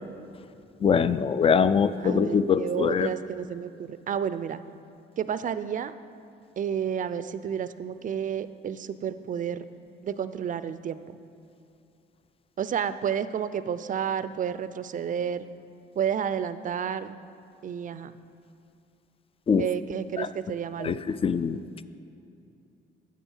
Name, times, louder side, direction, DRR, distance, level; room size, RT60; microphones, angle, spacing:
voice 1, 0.8-3.1 19.5-19.6 20.2-20.3 20.8-21.6, left 6 dB, 30° left, 14 dB, 0.4 m, -23 dB
voice 2, 2.0-4.6 5.2-5.9 6.6-9.6 10.0-11.2 12.6-15.4 15.9-17.2 17.6-18.1 19.6-21.0, right 8 dB, 40° right, 13 dB, 0.4 m, -31 dB
10.0 x 7.2 x 5.5 m, 2.6 s
cardioid pair, 90°, 20 cm